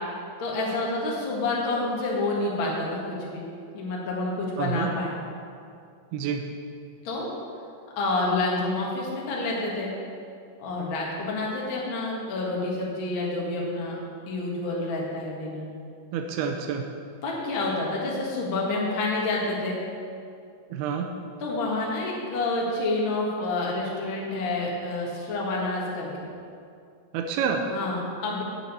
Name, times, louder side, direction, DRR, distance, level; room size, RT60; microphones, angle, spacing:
voice 1, 0.4-3.4 3.7-5.1 7.0-7.3 7.9-9.9 10.6-13.9 14.3-15.7 17.2-19.8 21.4-26.3 27.7-28.4, left 2 dB, 75° left, -3 dB, 1.1 m, -28 dB
voice 2, 4.6-4.9 6.1-6.4 16.1-16.8 20.7-21.1 27.1-27.6, right 7 dB, 85° right, 3 dB, 2.2 m, -28 dB
7.7 x 6.9 x 8.1 m, 2.4 s
omnidirectional pair, 5.3 m